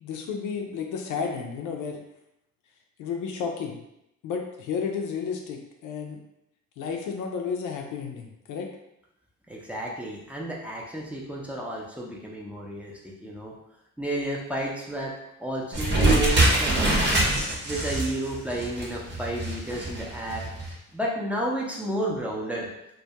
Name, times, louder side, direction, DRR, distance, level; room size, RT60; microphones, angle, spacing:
voice 1, 0.0-2.0 3.0-3.8 4.2-6.2 6.8-8.7, left 6 dB, 85° left, 2 dB, 0.5 m, -32 dB
voice 2, 9.5-13.5 14.0-15.1 15.4-16.9 17.6-20.5 20.9-22.7, right 1 dB, 5° right, -3 dB, 0.5 m, -32 dB
sound 1, 15.7-20.7, right 1 dB, 35° right, 0.8 m, -24 dB
2.2 x 2.2 x 2.7 m, 0.82 s
cardioid pair, 90°, 30 cm